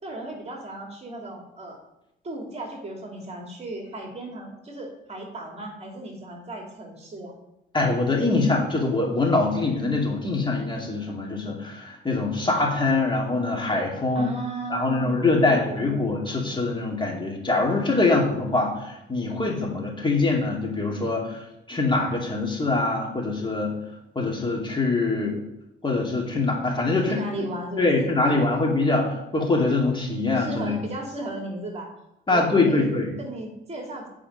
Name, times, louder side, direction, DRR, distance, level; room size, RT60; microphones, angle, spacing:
voice 1, 0.0-1.8 2.2-7.4 14.1-16.1 18.0-18.3 27.1-28.6 30.3-31.9 32.3-32.9 33.2-34.1, right 2 dB, 30° right, 2 dB, 2.1 m, -36 dB
voice 2, 7.7-14.3 14.7-23.8 24.2-25.4 25.8-27.5 27.8-30.8 32.3-33.1, left 3 dB, 25° left, -1 dB, 2.3 m, -24 dB
10.5 x 4.9 x 5.3 m, 0.86 s
cardioid pair, 90°, 20 cm